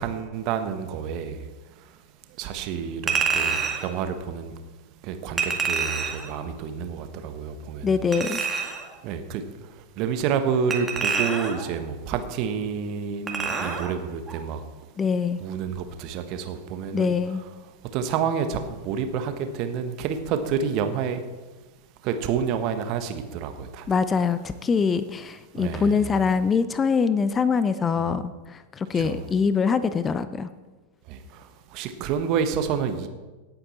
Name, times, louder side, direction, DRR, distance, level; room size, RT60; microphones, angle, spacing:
voice 1, 0.0-1.4 2.4-4.5 5.0-8.0 8.2-8.5 9.0-9.4 10.0-14.6 15.4-17.1 17.9-21.2 22.0-23.8 25.6-26.0 28.9-29.2 31.1-31.2 31.7-33.1, right 7 dB, 40° right, 8 dB, 1.3 m, -29 dB
Chink clink, 3.1-3.9 5.4-6.3 8.1-8.9 10.7-11.7 13.3-13.9 14.3-14.4, right 5 dB, 15° right, 2.1 m, -27 dB
voice 2, 7.8-8.4 15.0-15.4 16.9-17.4 23.9-30.5, left 5 dB, 20° left, 14 dB, 0.6 m, -24 dB
18.0 x 8.7 x 4.3 m, 1.2 s
figure-of-eight pair, 90°, 0 cm